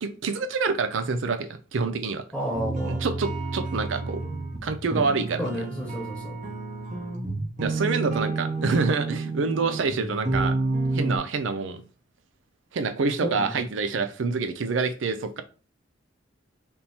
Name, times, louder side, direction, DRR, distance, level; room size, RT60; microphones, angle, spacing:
voice 1, 0.0-2.2 2.8-4.2 4.6-5.5 7.6-10.6 10.9-11.8 12.7-15.4, right 4 dB, 75° right, 0.5 m, -27 dB
voice 2, 2.3-3.1 5.4-6.4 13.2-13.6, equal, 5° left, 1.0 m, -31 dB
sound 1, 2.5-11.2, right 3 dB, 45° right, 0.9 m, -30 dB
3.5 x 2.8 x 4.2 m
head